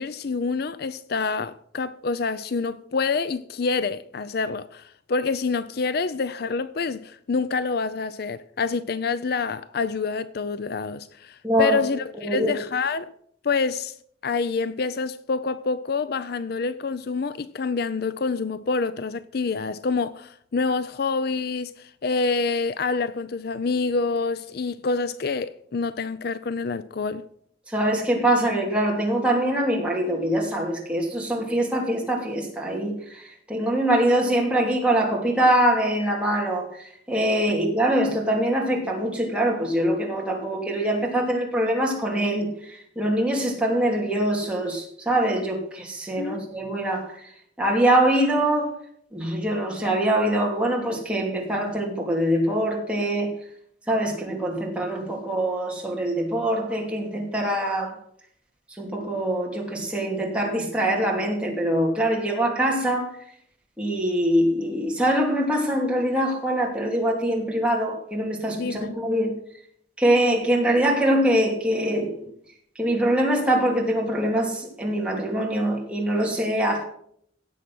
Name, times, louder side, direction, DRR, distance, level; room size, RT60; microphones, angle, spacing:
voice 1, 0.0-13.1 13.4-13.9 14.2-27.2 46.2-46.4 68.5-68.9, left 4 dB, 55° left, 0.5 m, -27 dB
voice 2, 11.4-11.8 12.2-12.5 27.7-47.3 47.6-48.8 49.1-53.3 53.9-57.9 58.8-63.1 63.8-69.3 70.0-72.3 72.7-76.8, right 1 dB, 5° right, 2.8 m, -23 dB
17.0 x 7.5 x 6.2 m
head